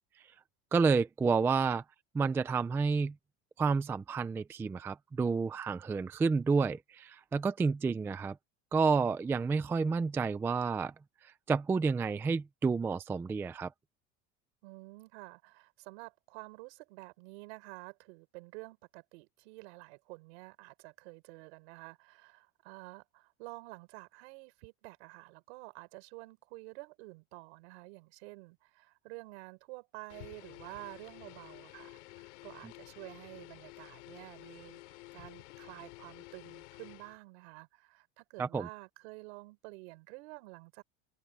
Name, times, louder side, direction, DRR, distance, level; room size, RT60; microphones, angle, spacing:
voice 1, 0.7-1.8 2.1-3.1 3.6-8.4 8.7-10.9 11.5-13.7 38.4-38.7, right 4 dB, 5° right, 0.3 m, -30 dB
voice 2, 14.6-40.8, right 27 dB, 70° right, 5.7 m, -50 dB
sound 1, 30.1-37.2, left 22 dB, 90° left, 3.8 m, -52 dB
open air
cardioid pair, 165°, 34 cm